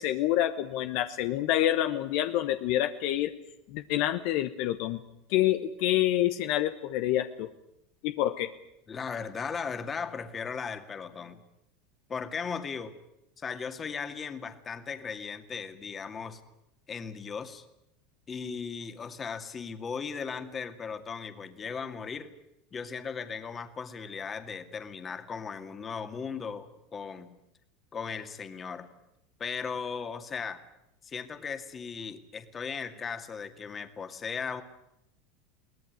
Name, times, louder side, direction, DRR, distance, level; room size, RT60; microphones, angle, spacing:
voice 1, 0.0-3.3 3.7-5.0 5.3-7.5 8.0-8.5, left 13 dB, 65° left, 9 dB, 1.1 m, -27 dB
voice 2, 8.9-11.4 12.1-12.9 13.4-16.4 16.9-17.6 18.3-22.3 22.7-27.3 27.9-28.9 29.4-30.6 31.0-34.6, left 6 dB, 25° left, 8 dB, 2.2 m, -37 dB
23.0 x 17.5 x 9.5 m, 0.84 s
supercardioid pair, 110°, 0 cm